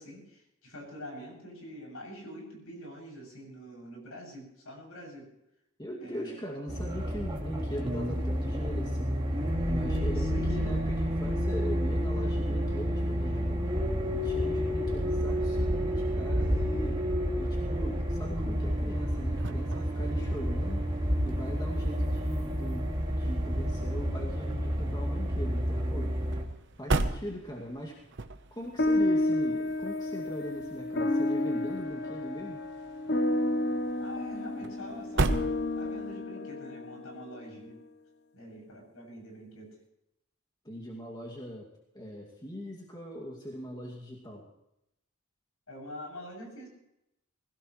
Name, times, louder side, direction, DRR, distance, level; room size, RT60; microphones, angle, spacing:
voice 1, 0.0-5.3 6.0-6.4 10.1-10.7 34.0-35.5 35.7-37.8 38.3-39.8 45.7-46.7, equal, 75° left, 0 dB, 7.3 m, -45 dB
voice 2, 5.8-9.2 9.7-13.7 14.1-17.1 17.4-20.8 21.2-26.2 26.8-28.0 28.5-32.6 40.6-44.5, equal, 20° left, -1 dB, 2.3 m, -40 dB
sound 1, 6.7-26.4, equal, 20° right, 2.3 m, -30 dB
sound 2, 18.1-36.2, right 2 dB, 55° right, 1.0 m, -38 dB
sound 3, 28.8-37.5, left 1 dB, 50° left, 0.9 m, -30 dB
21.0 x 16.5 x 3.2 m, 0.84 s
head